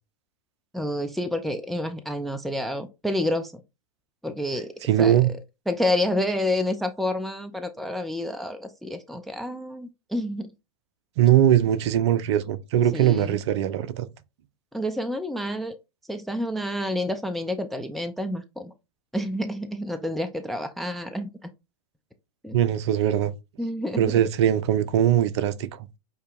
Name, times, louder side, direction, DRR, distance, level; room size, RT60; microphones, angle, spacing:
voice 1, 0.7-3.5 4.2-4.7 5.0-5.2 5.7-10.5 12.9-13.4 14.7-15.7 16.1-18.7 19.1-21.3 22.4-22.6 23.6-24.2, left 1 dB, ahead, 0.3 m, -29 dB
voice 2, 4.8-5.3 11.2-14.1 22.5-23.3 24.0-25.9, right 11 dB, 50° right, 0.6 m, -21 dB
8.0 x 2.8 x 2.4 m
figure-of-eight pair, 100°, 18 cm